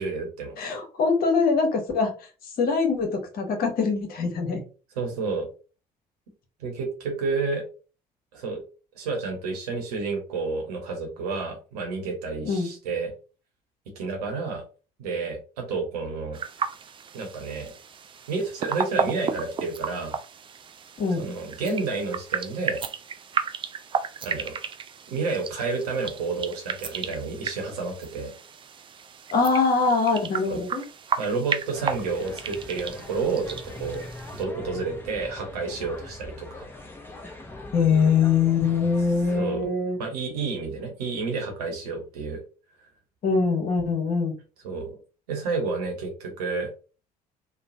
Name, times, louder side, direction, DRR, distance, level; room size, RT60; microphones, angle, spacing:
voice 1, 0.0-0.6 5.0-5.5 6.6-7.6 8.3-8.6 8.9-13.1 14.0-14.6 15.0-16.4 17.1-17.7 18.3-20.2 21.2-22.8 24.2-24.6 25.1-28.3 30.5-30.6 31.2-34.0 34.4-36.7 39.4-39.6 40.0-42.4 44.6-45.0 45.3-46.7, right 4 dB, 70° right, 3 dB, 0.9 m, -30 dB
voice 2, 0.6-2.1 2.6-4.6 12.5-12.7 21.0-21.2 29.3-30.8 37.7-40.0 43.2-44.3, left 5 dB, 50° left, 4 dB, 1.0 m, -23 dB
sound 1, 16.3-34.4, right 6 dB, 25° right, 0.4 m, -34 dB
sound 2, 31.7-39.4, left 2 dB, 10° left, 0.8 m, -42 dB
3.1 x 2.0 x 2.6 m, 0.35 s
figure-of-eight pair, 55°, 21 cm